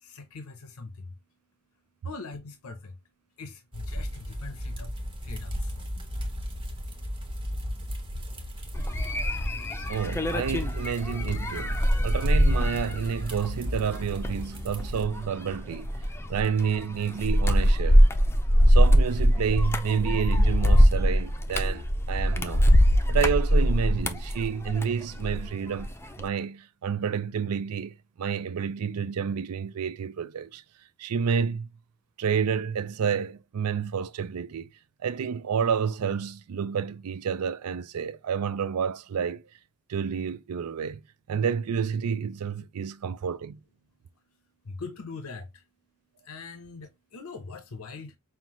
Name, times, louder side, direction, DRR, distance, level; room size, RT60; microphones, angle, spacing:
voice 1, 0.0-1.1 2.0-3.0 3.4-4.9 5.2-5.7 44.6-45.6 46.2-48.2, left 4 dB, 80° left, 0.7 m, -41 dB
sound 1, 3.7-15.0, equal, 25° right, 1.0 m, -35 dB
sound 2, 8.7-25.5 25.8-26.2, equal, 10° left, 0.4 m, -22 dB
voice 2, 9.9-15.9 16.3-18.0 18.7-22.7 23.1-30.6 31.0-31.7 32.2-34.7 35.0-39.4 39.9-41.0 41.3-43.6, right 7 dB, 90° right, 0.4 m, -29 dB
5.6 x 2.4 x 3.0 m
head